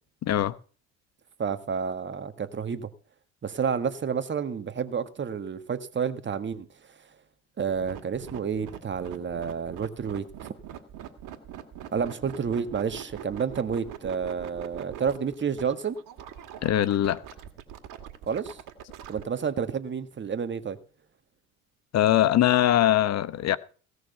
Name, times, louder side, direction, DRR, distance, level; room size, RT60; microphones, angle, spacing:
voice 1, 0.2-0.5 16.6-17.2 21.9-23.6, left 12 dB, 50° left, 0.9 m, -22 dB
voice 2, 1.4-2.9 3.4-6.7 7.6-10.2 11.9-16.0 18.3-18.6 19.1-20.8, right 6 dB, 30° right, 1.6 m, -30 dB
sound 1, 7.6-19.2, right 10 dB, 60° right, 2.2 m, -42 dB
17.0 x 6.4 x 6.8 m
hypercardioid pair, 65°, 35 cm